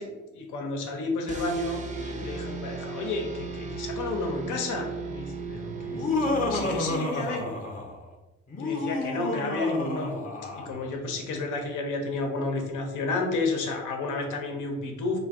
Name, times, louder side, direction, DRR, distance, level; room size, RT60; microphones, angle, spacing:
voice 1, 0.0-7.5 8.6-10.2 10.5-15.2, left 3 dB, 85° left, 2 dB, 0.7 m, -31 dB
sound 1, 1.3-7.1, right 4 dB, 25° right, 0.4 m, -36 dB
Laughter, 5.8-8.0 8.5-10.8, left 2 dB, 25° left, 0.6 m, -30 dB
2.4 x 2.2 x 3.4 m, 1.1 s
cardioid pair, 90°, 30 cm